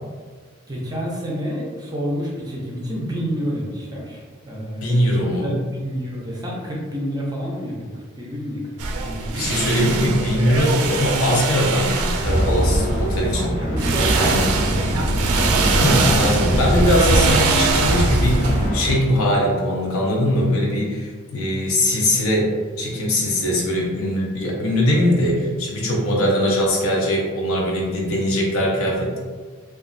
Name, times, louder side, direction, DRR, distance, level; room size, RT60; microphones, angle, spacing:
voice 1, 0.7-9.8 13.5-14.7, equal, 20° right, -3 dB, 0.5 m, -29 dB
voice 2, 4.8-5.6 9.3-13.6 14.1-14.5 15.8-29.2, left 1 dB, 75° left, -2 dB, 0.7 m, -21 dB
sound 1, 8.8-13.5 13.8-18.7, right 3 dB, 80° right, 0.4 m, -23 dB
sound 2, 12.2-19.0, equal, 35° left, 0.6 m, -22 dB
2.9 x 2.3 x 2.5 m, 1.5 s
head